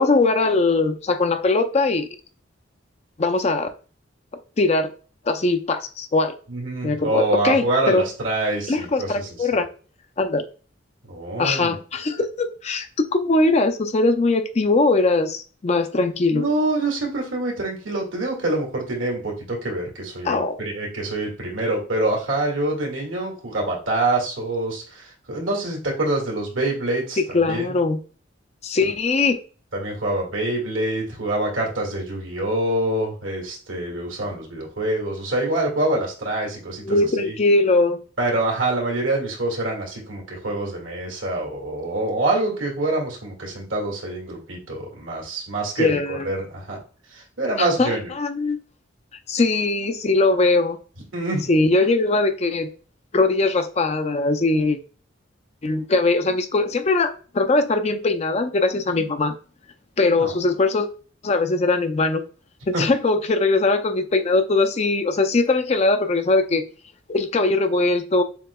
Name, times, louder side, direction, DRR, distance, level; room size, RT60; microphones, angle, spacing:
voice 1, 0.0-2.1 3.2-3.7 4.6-4.9 5.3-6.3 6.8-8.1 8.7-9.7 10.2-10.5 11.4-12.9 13.1-16.5 20.2-20.6 27.3-28.0 28.6-29.4 36.8-38.0 45.8-46.3 47.6-47.9 48.2-48.6 49.3-50.8 51.5-52.7 53.1-54.8 55.6-59.3 60.0-60.9 61.2-62.2 62.7-66.6 67.1-68.2, left 3 dB, 35° left, 8 dB, 0.4 m, -20 dB
voice 2, 6.5-9.6 11.1-11.8 16.3-27.7 29.7-37.4 38.2-46.8 47.1-48.1 51.1-51.7 60.2-60.4 62.7-62.8, right 2 dB, 85° right, -1 dB, 2.0 m, -26 dB
7.3 x 2.8 x 2.3 m, 0.38 s
head